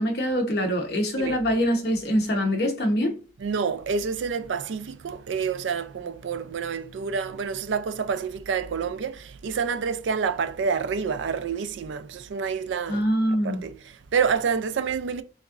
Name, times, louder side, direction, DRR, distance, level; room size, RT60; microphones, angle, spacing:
voice 1, 0.0-3.1 12.9-13.6, equal, 60° left, 0.9 m, -24 dB
voice 2, 3.4-13.0 13.3-15.2, right 6 dB, 90° right, 0.4 m, -28 dB
3.5 x 3.0 x 2.4 m
head